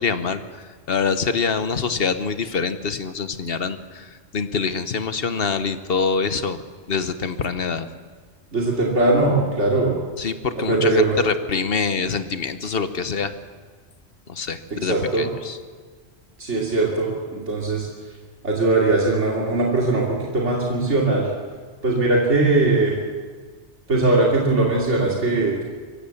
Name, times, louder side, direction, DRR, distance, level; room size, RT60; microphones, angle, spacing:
voice 1, 0.0-6.6 6.9-7.9 10.2-13.3 14.3-15.6, left 5 dB, 55° left, 10 dB, 1.3 m, -25 dB
voice 2, 8.5-10.0 10.5-11.2 14.8-15.3 16.4-17.9 18.4-20.1 20.3-21.3 21.8-22.9 23.9-25.6, right 2 dB, 85° right, -3 dB, 3.0 m, -20 dB
24.0 x 15.5 x 7.1 m, 1.5 s
omnidirectional pair, 1.2 m